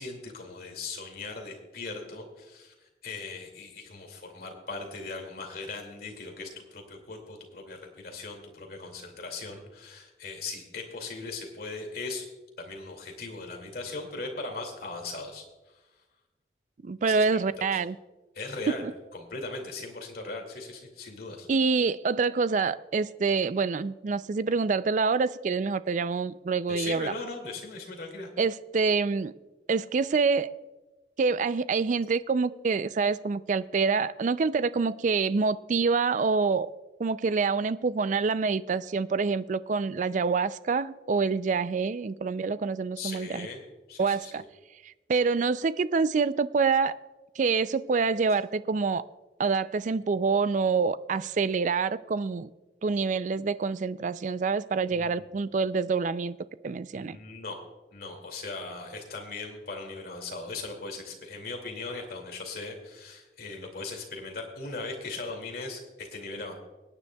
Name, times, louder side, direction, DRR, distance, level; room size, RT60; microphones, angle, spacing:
voice 1, 0.0-12.3 12.6-15.4 15.7-15.8 17.0-17.8 18.3-18.8 19.1-21.5 26.7-28.3 43.0-43.6 43.9-44.5 54.9-55.3 56.9-57.6 57.9-66.5, left 3 dB, 60° left, 3 dB, 2.4 m, -39 dB
voice 2, 16.8-18.0 18.8-18.9 21.5-27.1 28.4-29.3 29.7-30.5 31.2-36.7 37.0-43.5 44.0-44.4 45.1-47.0 47.4-49.0 49.4-52.5 52.8-56.4 56.6-57.2, right 4 dB, 45° right, 15 dB, 0.4 m, -26 dB
24.0 x 9.8 x 2.3 m, 1.1 s
head